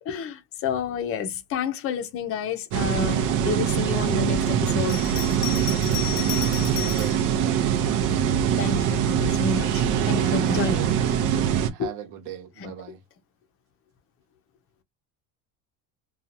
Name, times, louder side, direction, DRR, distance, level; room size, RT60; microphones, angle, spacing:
voice 1, 0.1-5.0 8.6-11.0 11.8-11.9 12.6-12.7, left 5 dB, 35° left, 0.6 m, -29 dB
sound 1, 2.7-11.7, right 9 dB, 50° right, 0.7 m, -23 dB
Bell, 4.8-7.2 8.0-8.9, left 14 dB, 75° left, 0.6 m, -34 dB
voice 2, 6.9-8.3 10.7-11.0 11.7-13.0, right 11 dB, 70° right, 1.0 m, -39 dB
2.7 x 2.4 x 2.6 m
cardioid pair, 145°, 39 cm